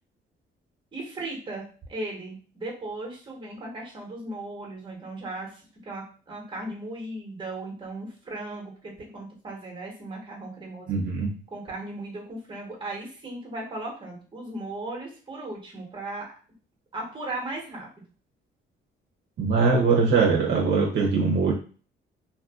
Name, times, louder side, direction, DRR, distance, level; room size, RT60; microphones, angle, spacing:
voice 1, 0.9-11.0 11.5-16.3 16.9-17.9, right 2 dB, 25° right, -2 dB, 1.2 m, -37 dB
voice 2, 10.9-11.3 19.4-21.5, right 4 dB, 60° right, -3 dB, 0.7 m, -22 dB
2.6 x 2.5 x 2.4 m, 0.39 s
cardioid pair, 90°, 20 cm